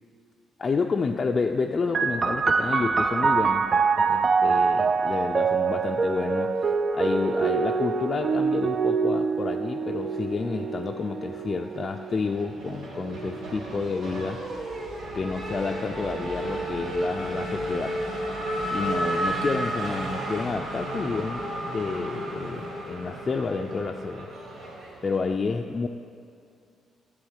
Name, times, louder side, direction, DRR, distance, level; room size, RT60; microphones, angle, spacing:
voice 1, 0.6-3.7 4.1-6.5 6.9-14.4 15.1-18.0 18.7-24.3 25.0-25.9, left 4 dB, 35° left, 3 dB, 0.4 m, -30 dB
sound 1, 1.9-15.2 16.0-16.8, right 5 dB, 40° right, 0.3 m, -26 dB
Race car auto racing / Accelerating revving vroom, 10.3-11.3 11.6-25.3, right 1 dB, 85° right, 1.7 m, -33 dB
sound 2, 14.4-22.1, right 1 dB, 20° right, 1.5 m, -46 dB
10.5 x 3.8 x 7.3 m, 2.4 s
cardioid pair, 90°, 0 cm